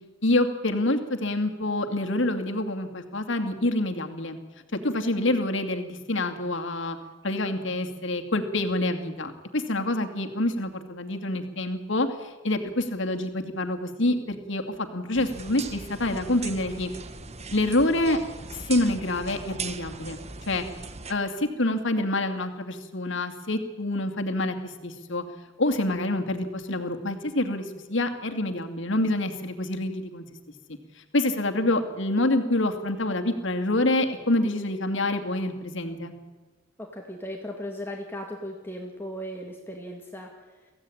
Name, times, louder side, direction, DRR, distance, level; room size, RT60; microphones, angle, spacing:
voice 1, 0.2-4.4 4.7-7.0 7.2-16.9 17.5-18.2 18.5-20.2 20.5-20.6 21.1-25.2 25.6-30.2 30.7-30.8 31.1-36.1, left 1 dB, 65° left, 5 dB, 2.5 m, -27 dB
sound 1, 15.1-21.1, right 4 dB, 35° right, 1.3 m, -39 dB
voice 2, 36.8-40.3, equal, 10° left, 1 dB, 2.1 m, -37 dB
23.5 x 16.0 x 10.0 m, 1.3 s
head